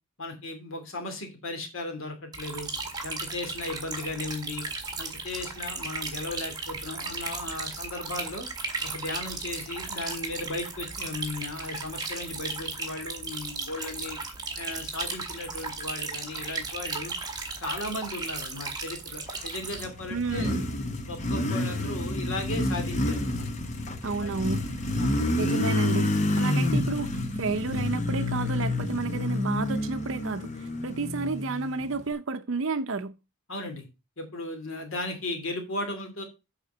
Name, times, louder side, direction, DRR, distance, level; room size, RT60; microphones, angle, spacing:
voice 1, 0.2-2.7 3.0-4.6 5.0-8.5 8.8-14.2 14.6-17.1 17.6-20.6 21.1-23.5 24.2-24.4 25.0-25.2 33.5-33.9 34.2-36.2, left 2 dB, 65° left, 2.5 m, -36 dB
sound 1, 2.3-19.9, right 4 dB, 20° right, 1.8 m, -36 dB
Motorcycle, 19.4-32.1, left 1 dB, 30° left, 0.9 m, -29 dB
voice 2, 20.1-20.7 24.0-24.6 25.4-33.1, right 3 dB, 60° right, 0.7 m, -31 dB
8.0 x 5.0 x 5.4 m
head